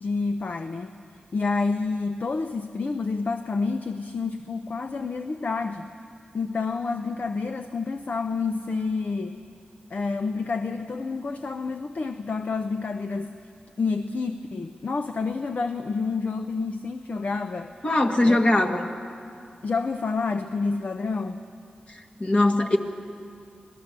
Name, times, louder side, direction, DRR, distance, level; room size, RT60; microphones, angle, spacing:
voice 1, 0.0-0.9 1.3-5.9 6.3-9.4 9.9-13.3 13.8-17.7 18.2-18.4 19.6-21.4, left 4 dB, 60° left, 7 dB, 0.8 m, -28 dB
voice 2, 17.8-18.9 22.2-22.8, left 1 dB, 40° left, 2 dB, 1.8 m, -20 dB
26.0 x 17.5 x 6.8 m, 2.4 s
cardioid pair, 65°, 3 cm